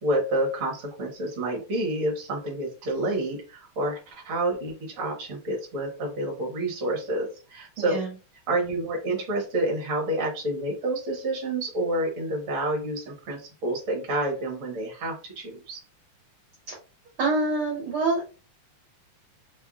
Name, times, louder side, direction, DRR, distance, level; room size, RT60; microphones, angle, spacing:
voice 1, 0.0-8.0 8.5-15.8, right 1 dB, 45° right, 0 dB, 1.0 m, -29 dB
voice 2, 7.8-8.1 16.7-16.8 17.2-18.2, right 3 dB, 65° right, -1 dB, 1.4 m, -26 dB
4.7 x 2.7 x 2.4 m, 0.33 s
omnidirectional pair, 3.3 m